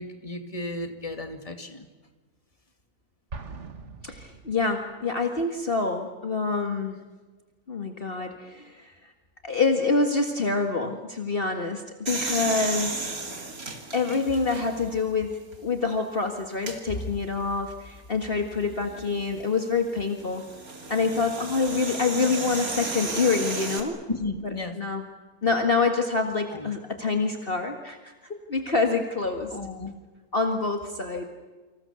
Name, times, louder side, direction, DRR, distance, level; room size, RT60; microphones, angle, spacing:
voice 1, 0.0-1.9 24.1-24.8 26.5-26.7 29.5-30.0, left 2 dB, 25° left, 6 dB, 2.3 m, -34 dB
Explosion, 3.3-5.1, right 4 dB, 55° right, 1.9 m, -41 dB
voice 2, 4.0-7.0 7.7-9.1 9.4-13.1 13.9-20.4 20.9-24.0 24.8-25.0 25.4-28.1 28.5-29.5 30.3-31.2, left 4 dB, 40° left, 4 dB, 2.0 m, -26 dB
sound 1, 12.1-15.0 15.5-15.6 16.5-16.8 18.9-23.8, right 3 dB, 85° right, 3.4 m, -34 dB
29.0 x 26.0 x 7.0 m, 1.3 s
omnidirectional pair, 1.5 m